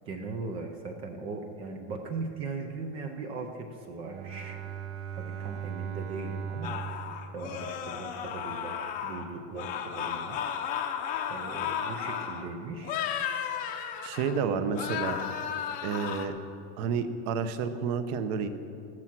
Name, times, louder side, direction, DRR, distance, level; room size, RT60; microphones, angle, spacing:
voice 1, 0.1-4.6 5.1-10.4 10.7-10.8 11.3-13.0, right 3 dB, 15° right, 5 dB, 0.4 m, -39 dB
Bowed string instrument, 4.0-8.4, right 8 dB, 75° right, 1.9 m, -39 dB
sound 1, 6.6-9.3 9.6-12.4 12.8-14.4 14.7-16.3, left 8 dB, 20° left, 0.7 m, -34 dB
voice 2, 14.0-15.2 15.8-16.3 16.8-18.5, right 6 dB, 35° right, 11 dB, 0.8 m, -30 dB
13.5 x 13.5 x 6.0 m, 2.6 s
supercardioid pair, 175°, 36 cm